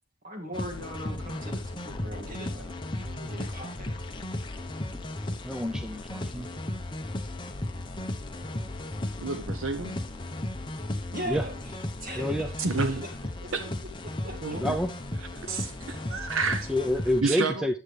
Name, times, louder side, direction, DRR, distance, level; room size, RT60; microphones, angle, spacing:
voice 1, 0.2-3.9 11.1-11.6 12.0-12.5 12.8-13.0 13.4-13.5 14.0-14.6, equal, 40° right, 2.1 m, -39 dB
sound 1, 0.5-17.2, left 1 dB, 20° left, 0.8 m, -35 dB
voice 2, 5.4-6.5 11.3-11.4 12.2-12.5 14.5-14.9 16.7-17.8, left 1 dB, 5° right, 0.4 m, -28 dB
voice 3, 9.2-9.9 12.6-13.0 13.5-13.6 14.4-14.8 15.4-16.7 17.2-17.7, right 4 dB, 75° right, 0.8 m, -29 dB
9.4 x 7.8 x 3.3 m
head